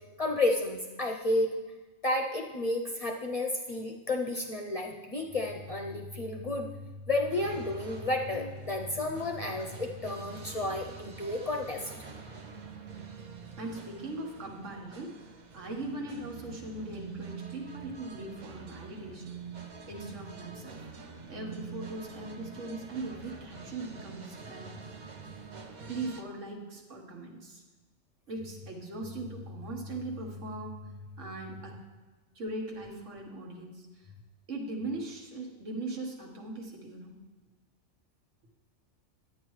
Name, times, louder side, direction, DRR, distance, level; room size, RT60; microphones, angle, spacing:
voice 1, 0.2-1.5 2.0-6.8 7.1-11.9, left 2 dB, 40° left, 1 dB, 0.6 m, -31 dB
sound 1, 7.3-26.2, right 5 dB, 45° right, 0.7 m, -46 dB
voice 2, 13.6-19.3 19.9-20.8 21.3-24.7 25.9-27.6 28.3-30.9 31.2-31.8 32.4-34.1 34.5-37.1, right 2 dB, 85° right, 0 dB, 1.7 m, -40 dB
10.5 x 8.9 x 3.1 m, 1.2 s
omnidirectional pair, 1.3 m